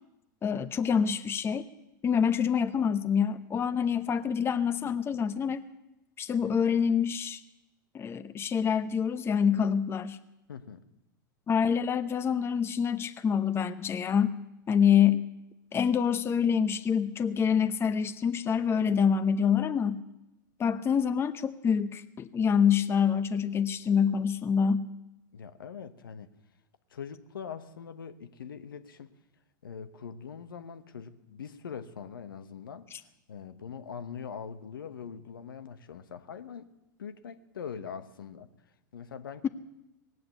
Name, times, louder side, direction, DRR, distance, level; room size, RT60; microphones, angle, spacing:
voice 1, 0.4-1.6 2.0-5.6 6.2-7.4 7.9-10.2 11.5-14.4 14.7-15.2 15.7-20.0 20.6-24.9 32.9-33.0, left 7 dB, 20° left, 10 dB, 0.8 m, -26 dB
voice 2, 10.5-10.8 25.3-26.3 26.9-29.1 29.6-32.9 33.3-36.7 37.0-38.5 38.9-39.5, left 7 dB, 85° left, 9 dB, 1.2 m, -42 dB
18.5 x 7.8 x 9.0 m, 0.93 s
hypercardioid pair, 105°, 11 cm